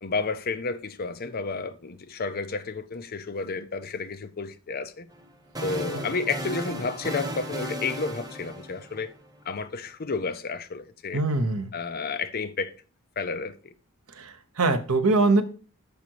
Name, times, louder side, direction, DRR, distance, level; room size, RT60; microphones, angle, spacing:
voice 1, 0.0-5.1 5.6-9.1 9.4-11.2 11.7-12.7 13.2-13.7, left 4 dB, 45° left, 0.6 m, -31 dB
sound 1, 5.1-9.3, equal, 15° right, 1.0 m, -35 dB
voice 2, 11.1-11.7 14.2-14.3 14.6-15.4, right 3 dB, 85° right, 1.0 m, -22 dB
7.0 x 5.1 x 4.7 m
head